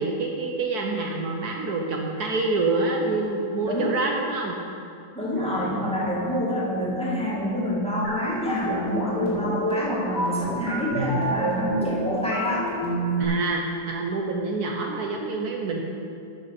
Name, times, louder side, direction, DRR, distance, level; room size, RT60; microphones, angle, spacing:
voice 1, 0.0-4.6 5.4-5.8 13.2-15.8, right 3 dB, 65° right, 0 dB, 1.4 m, -27 dB
voice 2, 3.6-3.9 5.1-12.7, equal, 5° left, -6 dB, 2.1 m, -27 dB
sound 1, 8.0-13.2, right 1 dB, 75° left, 3.9 m, -28 dB
13.0 x 6.5 x 5.9 m, 2.6 s
omnidirectional pair, 1.8 m